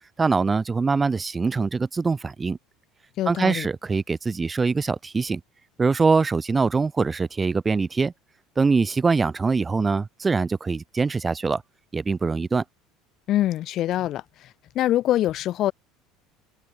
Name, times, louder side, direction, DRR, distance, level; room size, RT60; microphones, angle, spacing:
voice 1, 0.2-2.6 3.3-5.4 5.8-8.1 8.6-11.6 11.9-12.6, right 4 dB, 20° right, 6.7 m, -23 dB
voice 2, 3.2-3.7 13.3-14.5 14.7-15.7, left 13 dB, 50° left, 4.0 m, -24 dB
open air
supercardioid pair, 110°, 0 cm